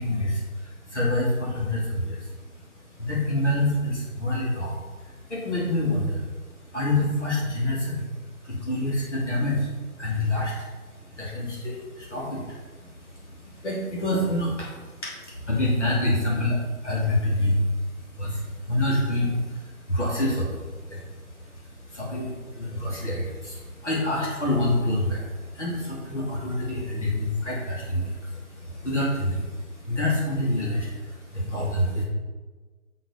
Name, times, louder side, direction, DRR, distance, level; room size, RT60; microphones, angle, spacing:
voice 1, 0.0-2.4 2.9-32.0, left 1 dB, 50° left, -5 dB, 2.8 m, -27 dB
7.6 x 7.0 x 4.3 m, 1.3 s
figure-of-eight pair, 170°, 45 cm